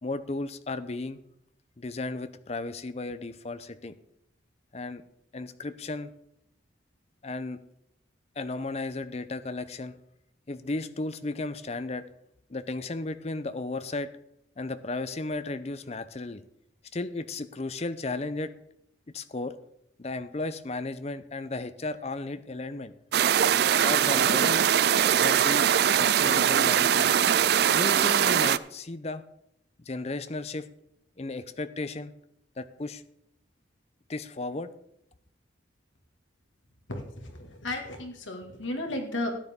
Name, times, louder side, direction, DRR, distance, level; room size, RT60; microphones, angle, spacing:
voice 1, 0.0-1.2 1.8-3.9 4.7-5.0 5.3-6.1 7.2-7.6 8.4-10.0 10.5-12.1 12.5-14.1 14.6-16.4 16.9-18.5 19.1-19.5 20.0-22.9 23.8-24.7 25.2-27.1 27.7-29.2 29.8-30.7 31.2-32.1 32.6-33.0 34.1-34.7, left 2 dB, 35° left, 12 dB, 0.6 m, -34 dB
sound 1, 23.1-28.6, right 9 dB, 55° right, 0.3 m, -22 dB
voice 2, 36.9-39.3, left 1 dB, 80° left, 3 dB, 2.1 m, -34 dB
13.5 x 9.5 x 3.7 m, 0.77 s
head